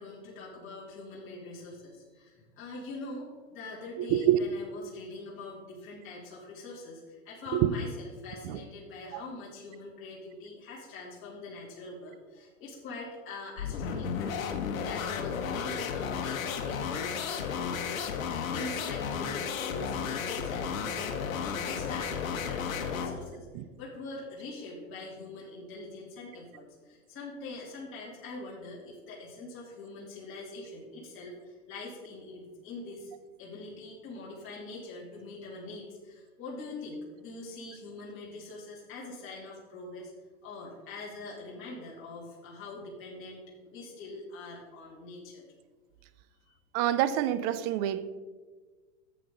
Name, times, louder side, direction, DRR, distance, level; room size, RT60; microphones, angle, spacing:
voice 1, 0.0-14.2 14.7-33.1 33.4-40.1 40.4-45.4 46.5-46.6, left 2 dB, 30° left, -6 dB, 2.8 m, -43 dB
voice 2, 4.1-4.4 7.5-7.7 8.4-8.6 9.1-9.2 23.5-23.6 46.7-48.1, right 12 dB, 35° right, 14 dB, 0.4 m, -26 dB
sound 1, 13.6-23.2, left 6 dB, 80° left, 1.3 m, -33 dB
11.0 x 7.7 x 3.8 m, 1.4 s
supercardioid pair, 135°, 40 cm